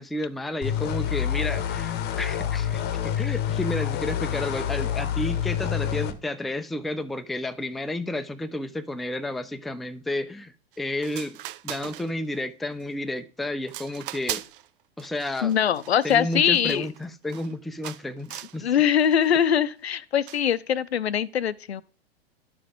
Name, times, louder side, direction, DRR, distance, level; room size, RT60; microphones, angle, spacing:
voice 1, 0.0-11.4 11.6-14.4 15.0-15.6 16.0-18.7, left 1 dB, ahead, 0.4 m, -31 dB
sound 1, 0.6-6.1, left 9 dB, 30° left, 0.9 m, -27 dB
sound 2, 10.7-10.8 11.0-12.4 12.8-13.2 13.7-14.7 15.0-17.5 17.8-18.6 19.0-19.4 20.3-20.5, right 14 dB, 60° right, 0.5 m, -39 dB
voice 2, 15.4-16.9 18.6-21.8, left 9 dB, 85° left, 0.5 m, -22 dB
11.5 x 5.0 x 3.6 m
figure-of-eight pair, 100°, 31 cm